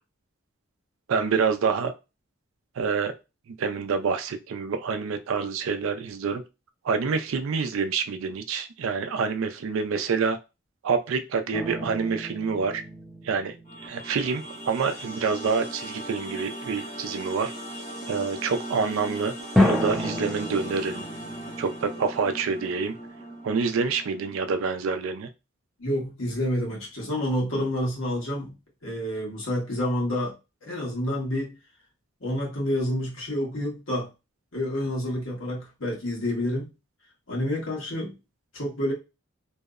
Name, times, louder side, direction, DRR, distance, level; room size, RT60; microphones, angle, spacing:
voice 1, 1.1-1.9 2.8-3.1 3.6-6.4 6.8-10.4 10.8-12.8 13.2-13.5 13.8-17.5 18.1-21.1 21.6-22.9 23.4-25.3, right 5 dB, 75° right, 8 dB, 0.4 m, -27 dB
sound 1, 11.5-14.6 19.6-23.2, left 1 dB, ahead, 0.4 m, -30 dB
sound 2, 13.6-24.7, right 1 dB, 45° left, 1.0 m, -39 dB
voice 2, 25.8-28.5 28.8-30.3 30.6-31.6 32.2-34.1 34.5-36.7 37.3-38.2 38.5-38.9, left 1 dB, 70° left, -3 dB, 1.2 m, -28 dB
2.7 x 2.0 x 2.3 m, 0.27 s
head